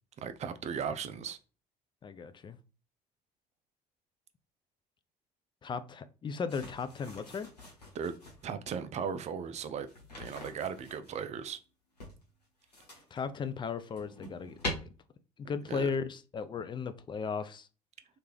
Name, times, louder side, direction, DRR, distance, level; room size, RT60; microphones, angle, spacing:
voice 1, 0.2-1.4 7.9-8.1 8.4-9.9 10.2-11.6 15.7-15.9, right 7 dB, 35° right, 0.5 m, -37 dB
voice 2, 2.0-2.6 5.6-7.5 13.1-14.8 15.5-17.7, left 5 dB, 25° left, 0.4 m, -36 dB
sound 1, 6.5-8.5 9.8-11.2 12.0-13.2 13.7-14.7, left 1 dB, 85° left, 1.1 m, -43 dB
3.2 x 2.5 x 3.4 m
figure-of-eight pair, 55°, 20 cm